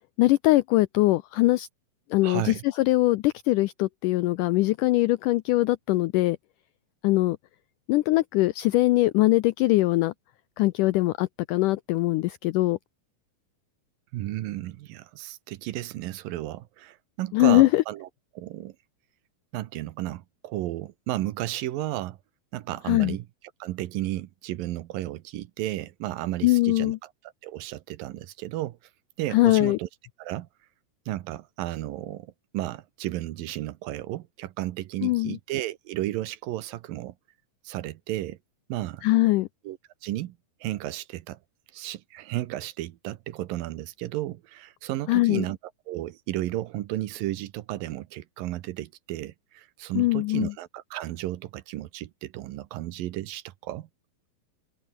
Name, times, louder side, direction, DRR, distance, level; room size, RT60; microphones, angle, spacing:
voice 1, 0.2-1.7 2.1-6.4 7.0-7.4 7.9-10.1 10.6-12.8 17.3-17.8 22.9-23.2 26.4-27.0 29.3-29.8 35.0-35.4 39.0-39.5 45.1-45.4 50.0-50.5, left 18 dB, 90° left, 1.8 m, -22 dB
voice 2, 2.2-2.6 14.1-18.1 18.3-18.8 19.5-22.2 22.5-23.2 23.6-27.1 27.4-28.8 29.2-29.9 30.2-30.5 31.1-37.1 37.6-38.4 38.7-39.0 39.6-41.4 41.7-45.6 45.9-53.9, right 15 dB, 75° right, 2.5 m, -33 dB
omnidirectional pair, 4.4 m